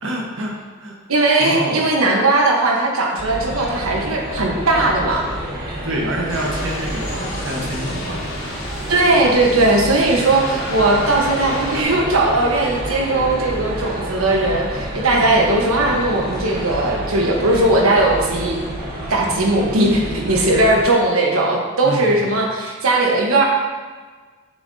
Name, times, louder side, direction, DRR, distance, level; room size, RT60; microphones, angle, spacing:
voice 1, 0.0-0.9 1.4-1.8 5.8-8.2 21.8-22.2, right 1 dB, 70° right, -2 dB, 1.4 m, -27 dB
voice 2, 1.1-5.2 8.9-18.6 19.1-23.4, right 2 dB, 85° right, 0 dB, 1.2 m, -18 dB
sound 1, 3.2-20.8, right 1 dB, 45° right, 1.4 m, -29 dB
sound 2, 6.3-11.8, left 2 dB, 70° left, 2.0 m, -33 dB
7.2 x 6.9 x 2.8 m, 1.4 s
head